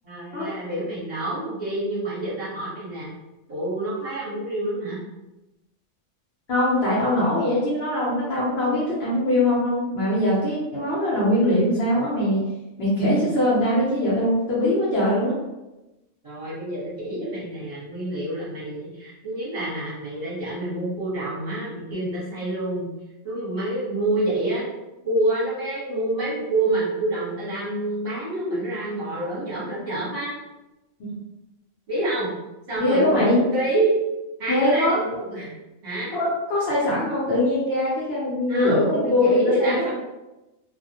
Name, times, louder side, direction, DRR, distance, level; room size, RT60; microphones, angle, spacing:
voice 1, 0.0-3.1 3.5-5.0 16.2-22.9 23.2-24.7 25.0-30.3 31.9-32.3 32.7-33.9 34.4-35.5 35.8-36.1 38.5-39.9, right 1 dB, 40° right, -9 dB, 1.0 m, -27 dB
voice 2, 6.5-12.4 12.8-15.4 31.0-31.1 32.8-33.4 34.5-35.0 36.1-39.9, left 1 dB, 60° left, -7 dB, 0.8 m, -22 dB
2.3 x 2.1 x 2.7 m, 1.0 s
omnidirectional pair, 1.3 m